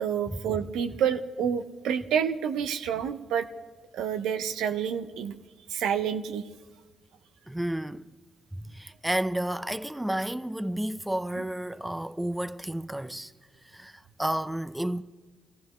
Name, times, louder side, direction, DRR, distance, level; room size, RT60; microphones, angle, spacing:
voice 1, 0.0-3.5 3.9-5.3 5.7-6.4, right 8 dB, 75° right, 0.6 m, -28 dB
voice 2, 7.5-8.1 8.5-13.3 13.7-15.0, right 1 dB, 10° right, 0.6 m, -31 dB
23.0 x 15.5 x 3.1 m
hypercardioid pair, 45°, 0 cm